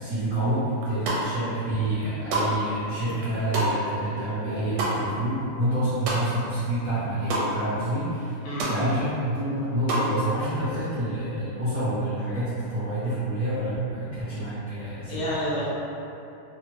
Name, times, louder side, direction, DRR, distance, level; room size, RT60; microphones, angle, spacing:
voice 1, 0.0-8.3 8.7-15.4, right 1 dB, 55° right, -15 dB, 0.9 m, -28 dB
sound 1, 0.8-1.5 1.9-6.6 6.9-7.5 7.9-8.0 8.2-8.8 9.2-10.1, right 1 dB, 80° right, 1.4 m, -29 dB
voice 2, 8.4-8.9 15.1-15.6, equal, 75° left, -8 dB, 1.5 m, -29 dB
3.6 x 2.0 x 2.9 m, 2.8 s
omnidirectional pair, 2.4 m